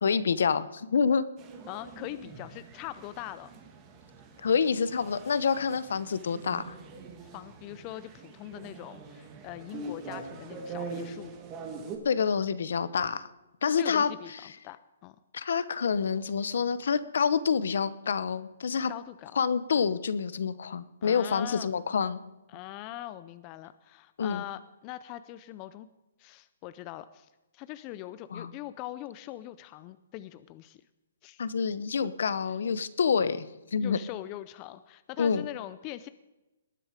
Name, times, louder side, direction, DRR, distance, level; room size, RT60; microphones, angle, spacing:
voice 1, 0.0-1.3 4.4-6.7 12.0-13.3 13.6-14.1 15.3-18.9 19.4-22.2 24.2-24.4 28.3-28.5 31.4-34.0 35.2-35.5, left 6 dB, 70° left, 15 dB, 0.9 m, -27 dB
sound 1, 1.4-12.0, right 4 dB, 20° right, 1.6 m, -44 dB
voice 2, 1.7-3.5 7.2-11.3 13.8-15.2 18.9-19.4 21.0-21.7 22.5-25.9 26.2-30.8 31.2-31.4 33.8-36.1, left 15 dB, 25° left, 13 dB, 0.4 m, -42 dB
19.5 x 10.0 x 5.1 m, 1.0 s
hypercardioid pair, 165°, 0 cm